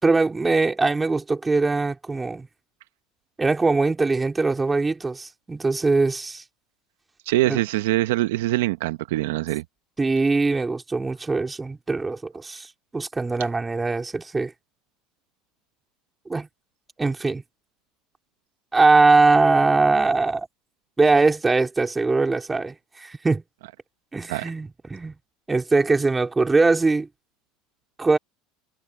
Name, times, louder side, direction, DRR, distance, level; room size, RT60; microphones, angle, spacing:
voice 1, 0.0-2.5 3.4-6.4 7.4-7.6 10.0-12.7 12.9-14.5 16.3-16.5 17.0-17.4 18.7-20.5 21.0-23.4 24.1-25.1 25.5-27.1 28.0-28.2, right 3 dB, 15° right, 3.4 m, -21 dB
voice 2, 7.3-9.6 24.3-24.5, right 17 dB, 80° right, 0.9 m, -23 dB
hypercardioid pair, 90°, 0 cm